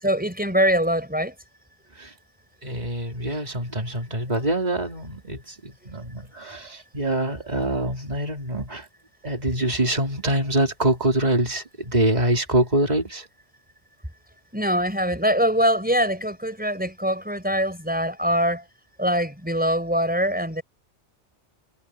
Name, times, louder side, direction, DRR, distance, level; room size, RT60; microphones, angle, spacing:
voice 1, 0.0-1.3 14.5-18.6 19.0-20.6, equal, 5° right, 5.2 m, -23 dB
voice 2, 2.6-8.9 9.2-13.3, right 1 dB, 35° right, 3.4 m, -25 dB
omnidirectional pair, 1.2 m